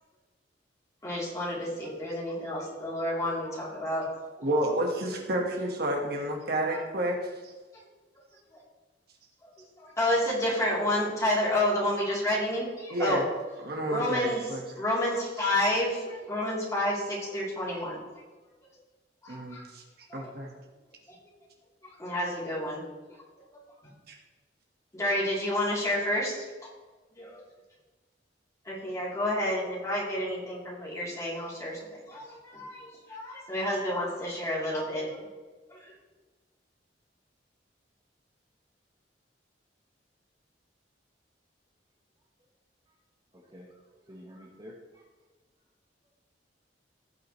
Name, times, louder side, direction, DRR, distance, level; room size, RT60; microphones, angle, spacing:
voice 1, 1.0-4.1 4.4-4.5 6.7-6.8 9.8-13.2 13.9-14.4 14.8-18.0 19.2-19.7 20.1-20.3 22.0-22.8 24.9-26.4 27.2-27.4 28.6-31.8 32.1-35.1 35.7-35.8, left 1 dB, 20° left, -7 dB, 3.4 m, -30 dB
voice 2, 4.4-7.3 12.9-13.2 13.6-14.6 19.3-19.8 20.1-20.5 24.1-24.2, right 1 dB, 60° right, 1 dB, 1.6 m, -30 dB
voice 3, 43.3-43.7 44.0-45.0, equal, 25° right, -3 dB, 1.2 m, -49 dB
16.5 x 5.9 x 3.2 m, 1.3 s
head